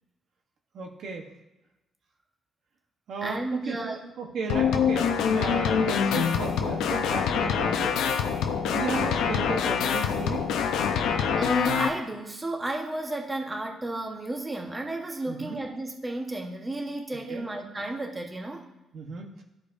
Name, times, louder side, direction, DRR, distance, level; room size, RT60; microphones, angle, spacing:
voice 1, 0.7-1.3 3.1-8.0 8.6-10.4 15.3-15.6 17.3-17.5 18.9-19.4, right 4 dB, 70° right, 2 dB, 1.1 m, -35 dB
voice 2, 3.2-4.0 10.8-18.7, right 2 dB, 20° right, 1 dB, 1.2 m, -33 dB
sound 1, 4.5-11.9, left 7 dB, 90° left, 0.7 m, -25 dB
13.5 x 5.0 x 2.6 m, 0.96 s
cardioid pair, 90°, 0 cm